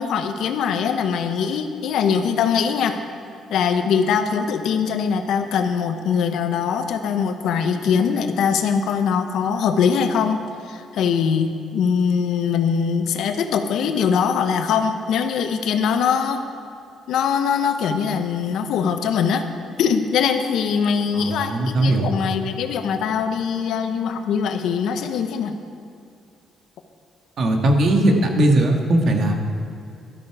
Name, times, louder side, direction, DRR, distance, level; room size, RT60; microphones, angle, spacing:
voice 1, 0.0-3.0 3.5-10.4 10.7-16.4 17.1-19.5 19.8-25.6, left 6 dB, 75° left, 7 dB, 1.0 m, -22 dB
voice 2, 21.1-22.1 27.4-29.3, right 1 dB, 60° right, 2 dB, 1.8 m, -19 dB
13.0 x 12.5 x 4.8 m, 2.5 s
cardioid pair, 85°, 0 cm